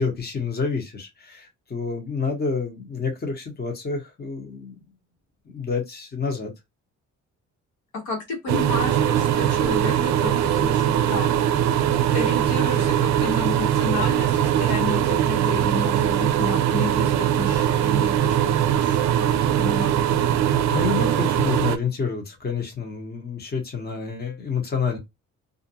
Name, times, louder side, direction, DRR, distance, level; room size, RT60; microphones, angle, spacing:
voice 1, 0.0-4.8 5.5-6.5 20.7-25.0, left 5 dB, 35° left, 1.0 m, -28 dB
voice 2, 7.9-11.5 12.1-19.3 19.6-20.2, left 3 dB, 80° left, 1.3 m, -32 dB
sound 1, 8.5-21.8, right 10 dB, 65° right, 0.4 m, -21 dB
2.5 x 2.2 x 2.7 m
cardioid pair, 90°, 30 cm